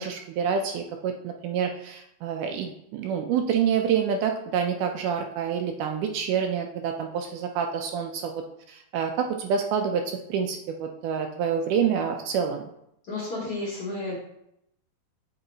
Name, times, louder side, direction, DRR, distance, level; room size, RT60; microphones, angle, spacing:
voice 1, 0.0-8.4 8.7-12.6, right 7 dB, 80° right, 4 dB, 2.0 m, -27 dB
voice 2, 13.1-14.2, left 2 dB, 60° left, -5 dB, 1.6 m, -32 dB
8.1 x 3.9 x 3.9 m, 0.79 s
omnidirectional pair, 4.0 m